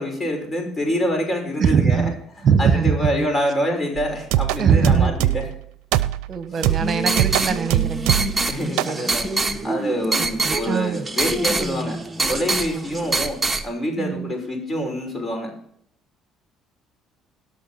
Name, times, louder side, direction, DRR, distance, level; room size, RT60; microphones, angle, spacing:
voice 1, 0.0-2.0 2.6-5.4 8.5-9.4 9.6-13.4 13.6-15.5, equal, 25° left, 2 dB, 6.0 m, -26 dB
voice 2, 1.6-2.2 2.4-3.3 4.6-5.2 6.3-8.2 8.8-9.1 10.2-11.0 14.0-14.3, right 6 dB, 45° right, 11 dB, 1.5 m, -21 dB
sound 1, 4.0-5.6 5.9-6.3 6.6-8.4 8.8-9.0, right 14 dB, 85° right, 0.6 m, -22 dB
sound 2, 6.6-13.6, right 2 dB, 15° right, 1.3 m, -25 dB
17.5 x 6.6 x 4.4 m, 0.66 s
supercardioid pair, 80°, 0 cm